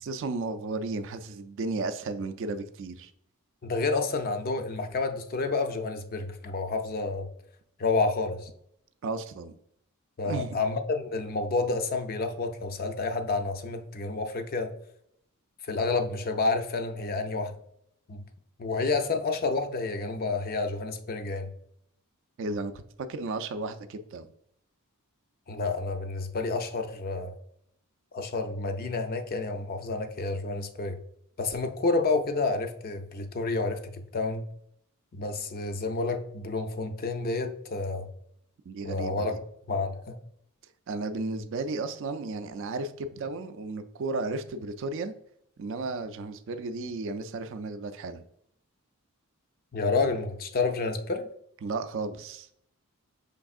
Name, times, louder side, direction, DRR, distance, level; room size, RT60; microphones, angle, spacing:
voice 1, 0.0-3.1 9.0-9.5 10.3-10.6 22.4-24.3 38.7-39.3 40.9-45.1 45.6-48.2 51.6-52.5, right 3 dB, 55° right, 9 dB, 0.4 m, -34 dB
voice 2, 3.6-7.3 7.8-8.5 10.2-14.7 15.7-17.5 18.1-18.2 18.6-21.5 25.5-27.3 28.1-31.0 31.4-34.5 35.1-38.1 38.8-39.4 39.7-40.2 49.7-51.3, left 3 dB, 40° left, 7 dB, 0.5 m, -29 dB
5.2 x 3.4 x 2.3 m, 0.71 s
head